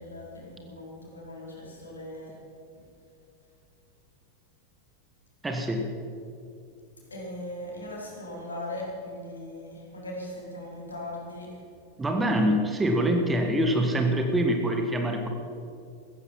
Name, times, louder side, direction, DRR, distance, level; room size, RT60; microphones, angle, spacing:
voice 1, 0.0-2.4 7.1-11.6, left 1 dB, 75° left, -3 dB, 4.5 m, -39 dB
voice 2, 5.4-5.9 12.0-15.3, right 1 dB, 10° right, 4 dB, 1.6 m, -25 dB
15.0 x 14.5 x 5.6 m, 2.5 s
figure-of-eight pair, 90°, 0 cm